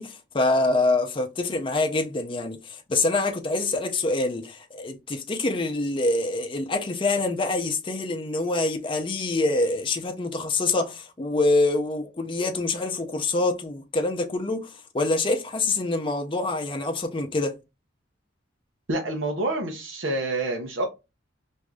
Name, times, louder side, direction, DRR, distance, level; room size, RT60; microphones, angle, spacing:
voice 1, 0.0-17.6, left 2 dB, 25° left, 0.5 m, -25 dB
voice 2, 18.9-20.9, right 2 dB, 75° right, 0.7 m, -27 dB
4.6 x 2.6 x 2.3 m
head